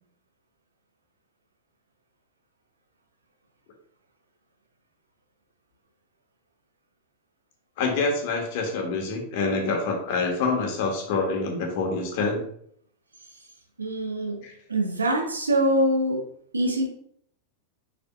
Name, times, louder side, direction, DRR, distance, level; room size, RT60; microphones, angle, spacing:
voice 1, 7.8-12.4 14.4-14.5, left 3 dB, 50° left, 2 dB, 1.6 m, -26 dB
voice 2, 13.8-16.2 16.5-16.9, right 1 dB, 75° right, 1 dB, 1.3 m, -24 dB
6.8 x 5.8 x 2.4 m, 0.65 s
figure-of-eight pair, 90°, 0 cm